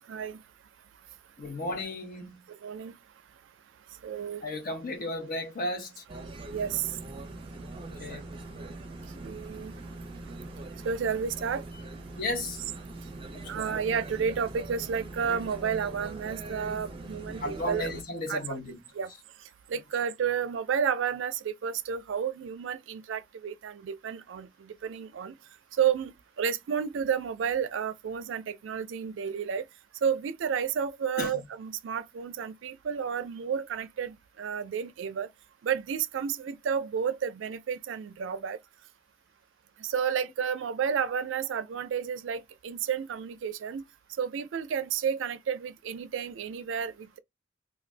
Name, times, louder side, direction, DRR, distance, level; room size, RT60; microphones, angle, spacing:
voice 1, 1.4-2.4 4.4-6.0 7.8-8.3 12.2-12.6 13.3-13.8 17.4-18.8 31.2-31.4, left 2 dB, 50° left, 0.8 m, -34 dB
voice 2, 2.5-2.9 4.0-4.5 6.5-7.0 9.2-9.7 10.8-11.7 13.5-17.9 18.3-18.6 18.9-19.1 19.7-25.3 25.7-29.6 30.0-35.3 35.6-38.6 39.8-43.8 44.2-47.2, right 7 dB, 90° right, 0.4 m, -31 dB
sound 1, 6.1-18.0, right 2 dB, 30° right, 0.5 m, -42 dB
2.5 x 2.2 x 3.2 m
head